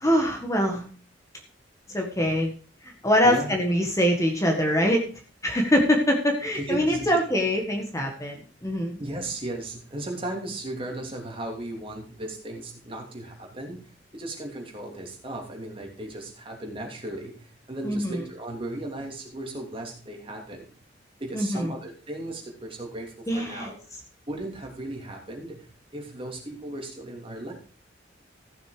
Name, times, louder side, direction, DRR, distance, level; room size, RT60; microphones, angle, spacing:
voice 1, 0.0-0.8 1.9-2.5 3.0-5.0 5.4-9.0 17.8-18.2 21.3-21.7 23.3-23.7, equal, 15° left, 2 dB, 1.7 m, -23 dB
voice 2, 3.2-3.5 6.5-7.1 9.0-20.6 21.2-23.8 24.3-25.7 25.9-27.5, right 1 dB, 30° right, 1 dB, 3.0 m, -36 dB
15.0 x 6.7 x 5.0 m, 0.39 s
head